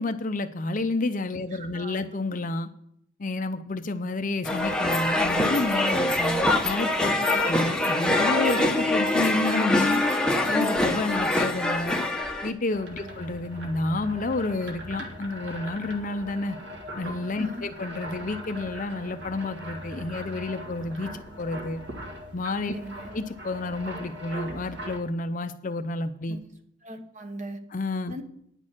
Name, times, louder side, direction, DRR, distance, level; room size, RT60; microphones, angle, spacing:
voice 1, 0.0-2.7 3.2-10.0 10.5-12.0 12.4-16.6 17.0-21.8 22.3-22.8 23.1-26.4 27.7-28.1, left 2 dB, 40° left, 10 dB, 0.5 m, -30 dB
voice 2, 1.5-2.0 7.1-7.5 13.0-13.2 17.4-17.7 22.7-23.1 26.3-26.4 26.8-27.6 28.1-28.2, right 1 dB, 35° right, 7 dB, 1.0 m, -40 dB
sound 1, 4.4-12.5, left 1 dB, 5° left, 0.8 m, -24 dB
sound 2, 12.7-25.0, equal, 55° right, 1.7 m, -40 dB
9.8 x 6.4 x 7.4 m, 0.71 s
head